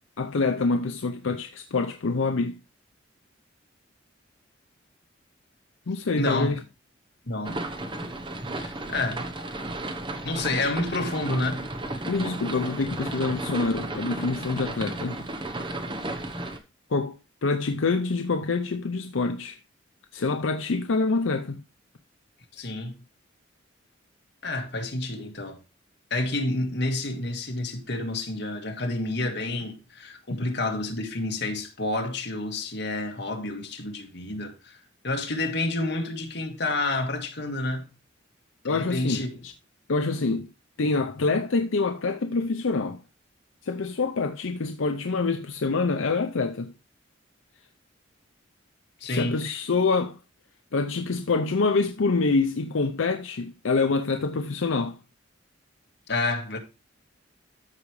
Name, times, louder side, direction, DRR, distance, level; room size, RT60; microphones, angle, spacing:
voice 1, 0.2-2.6 5.9-6.6 12.0-15.2 16.9-19.6 20.1-21.6 38.6-39.5 39.9-40.5 40.8-43.0 43.6-46.7 49.1-50.2 50.7-55.0, left 3 dB, 80° left, 0.6 m, -26 dB
voice 2, 6.2-6.6 7.3-7.6 8.5-9.2 10.2-11.6 22.5-23.0 24.4-25.6 26.1-34.8 35.0-37.9 38.6-39.3 49.0-49.4 56.1-56.6, left 2 dB, 60° left, 1.7 m, -29 dB
sound 1, 7.4-16.6, right 1 dB, 25° right, 1.0 m, -34 dB
13.5 x 4.9 x 3.1 m
head